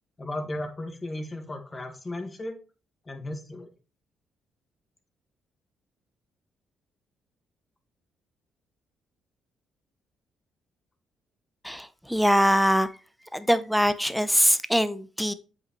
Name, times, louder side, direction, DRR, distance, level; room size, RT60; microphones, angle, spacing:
voice 1, 0.2-2.6 3.1-3.7, left 1 dB, 25° left, 1.7 m, -35 dB
voice 2, 11.6-12.9 13.3-15.3, equal, ahead, 0.7 m, -23 dB
7.9 x 5.7 x 3.1 m
cardioid pair, 90°, 0 cm